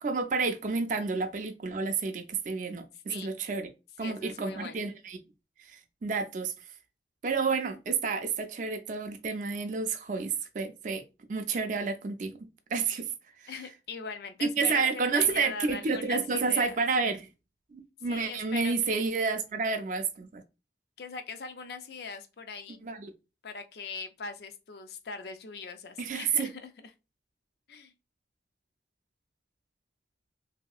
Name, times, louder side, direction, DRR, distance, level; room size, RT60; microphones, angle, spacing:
voice 1, 0.0-3.7 4.0-5.2 5.7-6.5 7.2-11.0 11.3-12.3 12.7-13.1 13.4-13.5 14.4-17.3 17.7-20.4 22.8-23.1 26.0-26.5, right 4 dB, 45° right, 0.4 m, -30 dB
voice 2, 4.0-4.9 13.5-16.8 18.1-19.1 21.0-22.9 23.4-26.9 27.7-27.9, left 5 dB, 60° left, 0.4 m, -41 dB
3.1 x 2.8 x 2.3 m
head